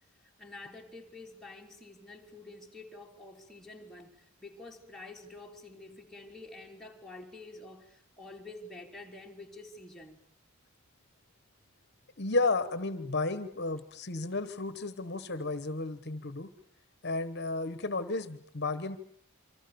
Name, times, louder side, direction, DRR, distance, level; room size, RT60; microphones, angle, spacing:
voice 1, 0.2-10.2, left 2 dB, ahead, 3.6 m, -48 dB
voice 2, 12.2-16.5 17.0-19.0, left 3 dB, 55° left, 1.2 m, -32 dB
28.0 x 25.0 x 7.0 m
head